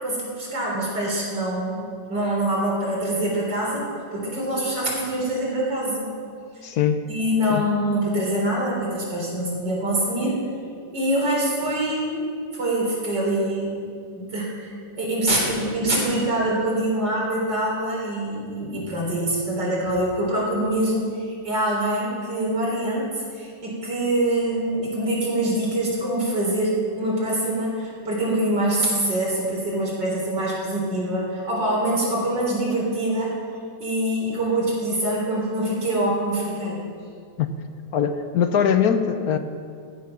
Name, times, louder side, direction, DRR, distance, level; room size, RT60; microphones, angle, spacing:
voice 1, 0.0-6.1 7.1-10.4 10.9-13.8 14.2-14.7 15.0-33.4 33.8-36.8, right 1 dB, 85° right, -3 dB, 4.4 m, -24 dB
voice 2, 6.6-7.0 7.5-7.7 37.4-37.5 37.9-39.4, left 8 dB, 65° left, 9 dB, 1.1 m, -21 dB
15.5 x 10.0 x 6.0 m, 2.2 s
omnidirectional pair, 1.9 m